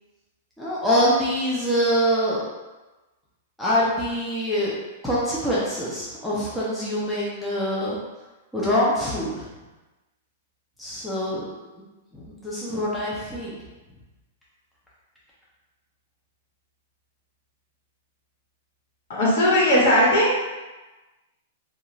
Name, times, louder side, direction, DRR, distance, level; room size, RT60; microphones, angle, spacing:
voice 1, 0.6-2.5 3.6-4.8 5.0-8.0 8.5-9.5 10.8-11.5 11.7-11.8 12.1-13.6, equal, ahead, -9 dB, 0.5 m, -24 dB
voice 2, 19.1-20.4, left 1 dB, 65° left, -7 dB, 1.4 m, -18 dB
2.4 x 2.3 x 2.9 m, 1.1 s
hypercardioid pair, 155°, 0 cm